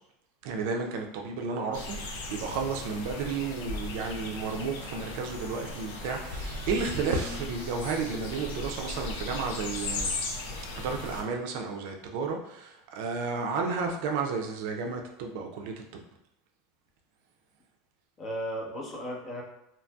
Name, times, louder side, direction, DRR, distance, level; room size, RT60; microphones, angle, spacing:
voice 1, 0.4-10.2 10.8-15.7, right 4 dB, 70° right, 2 dB, 0.4 m, -32 dB
sound 1, 1.7-11.2, left 2 dB, 80° left, 0.5 m, -37 dB
voice 2, 7.0-7.4 18.2-19.4, equal, 30° left, 0 dB, 0.7 m, -36 dB
2.7 x 2.6 x 2.2 m, 0.85 s
supercardioid pair, 120°, 0 cm